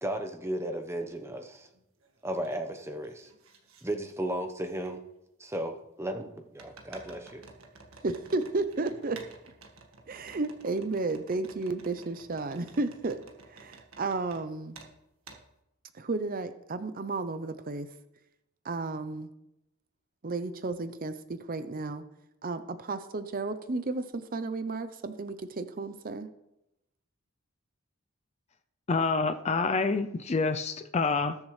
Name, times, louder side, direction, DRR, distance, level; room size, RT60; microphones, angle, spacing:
voice 1, 0.0-1.7 2.2-3.3 3.8-5.0 5.4-7.4, right 1 dB, 10° right, 6 dB, 0.9 m, -35 dB
sound 1, 1.1-1.2 1.7-2.6 2.8-3.8 4.8-4.9 6.6-14.4 14.7-14.9 15.3-15.4, right 3 dB, 75° right, 1.7 m, -52 dB
voice 2, 8.0-9.2 10.1-13.2 13.5-14.8 15.9-17.9 18.6-19.3 20.2-22.0 22.4-26.3, right 3 dB, 40° right, 10 dB, 0.6 m, -33 dB
voice 3, 28.9-31.4, left 4 dB, 30° left, 9 dB, 0.4 m, -27 dB
20.0 x 7.1 x 3.2 m, 0.87 s
head